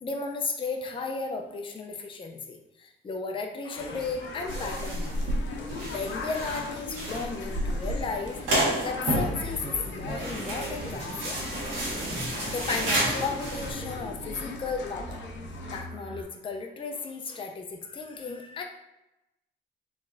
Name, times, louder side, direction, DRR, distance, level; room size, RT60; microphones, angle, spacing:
voice 1, 0.0-5.1 5.9-8.4 8.8-11.4 12.4-15.2 15.7-18.6, left 4 dB, 25° left, 3 dB, 0.5 m, -34 dB
sound 1, 3.7-15.8, left 3 dB, 70° left, 0.8 m, -39 dB
sound 2, 4.5-13.7, right 1 dB, 75° right, 1.5 m, -31 dB
sound 3, 9.1-16.2, right 2 dB, 40° right, 0.7 m, -42 dB
4.2 x 3.2 x 2.5 m, 0.93 s
cardioid pair, 90°, 20 cm